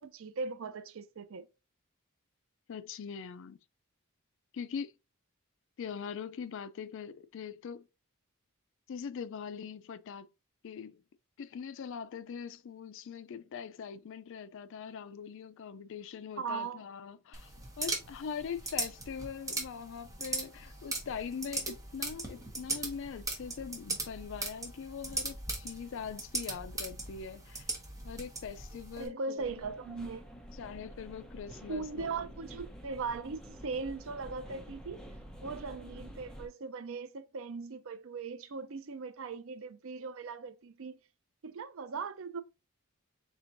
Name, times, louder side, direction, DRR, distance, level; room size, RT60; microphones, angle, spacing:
voice 1, 0.0-1.5 16.4-16.8 29.0-30.2 31.7-35.1 35.4-41.0 41.4-42.4, right 4 dB, 65° right, 0.5 m, -39 dB
voice 2, 2.7-3.6 4.5-4.9 5.8-7.9 8.9-10.3 10.6-11.0 11.4-27.7 28.0-29.6 30.5-32.3, left 6 dB, 60° left, 0.4 m, -42 dB
sound 1, 17.3-29.1, right 2 dB, 15° right, 1.2 m, -39 dB
sound 2, 29.4-36.5, equal, 5° left, 0.8 m, -48 dB
4.4 x 4.3 x 2.6 m
head